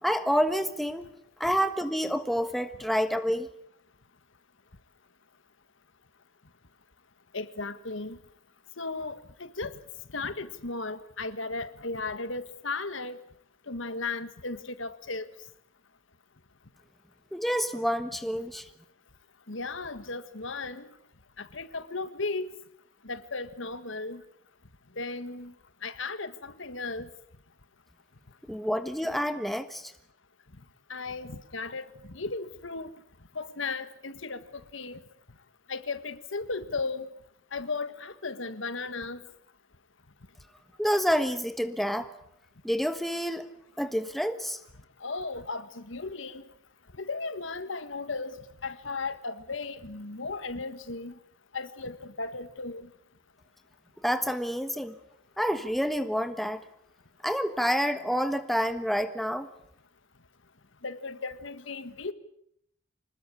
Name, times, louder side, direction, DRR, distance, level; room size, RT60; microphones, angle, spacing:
voice 1, 0.0-1.1 1.4-3.5 17.3-18.7 28.5-29.9 40.8-42.1 42.6-43.5 43.8-44.6 54.0-54.9 55.4-56.6 57.2-59.5, equal, ahead, 1.3 m, -28 dB
voice 2, 7.3-8.2 8.8-9.7 10.1-13.2 13.7-15.2 19.5-20.9 21.4-22.5 23.0-24.2 25.0-25.5 25.8-27.1 30.9-31.9 32.1-32.9 33.3-34.4 34.7-35.0 35.7-37.1 37.5-39.2 45.0-46.4 47.0-48.4 48.6-51.1 51.5-52.9 60.8-62.1, left 3 dB, 70° left, 1.6 m, -35 dB
26.5 x 20.0 x 8.6 m
head